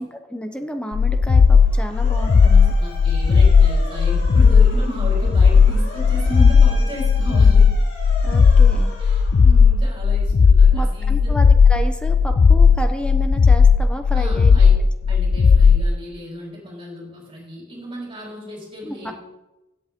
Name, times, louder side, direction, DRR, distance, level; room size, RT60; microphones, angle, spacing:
voice 1, 0.0-2.7 8.2-8.9 10.7-14.6 18.8-19.1, equal, 5° left, 6 dB, 0.9 m, -31 dB
sound 1, 0.9-15.9, left 5 dB, 45° left, 0.3 m, -14 dB
Motor vehicle (road) / Siren, 1.4-10.0, left 1 dB, 60° left, 4.2 m, -39 dB
voice 2, 2.5-7.7 9.0-11.4 14.1-14.8 15.0-19.1, equal, 25° right, -4 dB, 4.3 m, -34 dB
15.5 x 8.3 x 3.8 m, 1.0 s
head